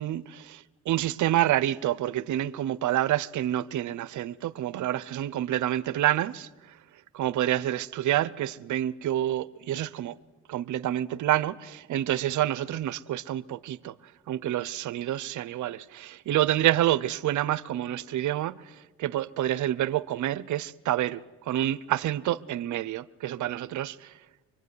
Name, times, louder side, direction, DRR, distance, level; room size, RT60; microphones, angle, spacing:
voice 1, 0.0-6.8 7.1-10.2 10.5-13.9 14.3-24.1, right 13 dB, 75° right, 0.9 m, -28 dB
25.0 x 23.5 x 9.7 m
cardioid pair, 90°, 30 cm